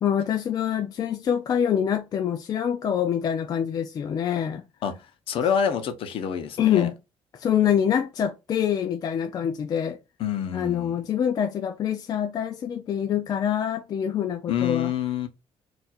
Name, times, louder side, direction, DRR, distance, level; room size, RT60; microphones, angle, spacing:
voice 1, 0.0-4.6 6.6-6.9 7.3-10.0 10.5-14.9, left 9 dB, 40° left, 0.4 m, -25 dB
voice 2, 4.8-6.9 10.2-11.0 14.5-15.3, left 8 dB, 65° left, 0.8 m, -27 dB
4.3 x 2.5 x 2.3 m
cardioid pair, 145°, 10 cm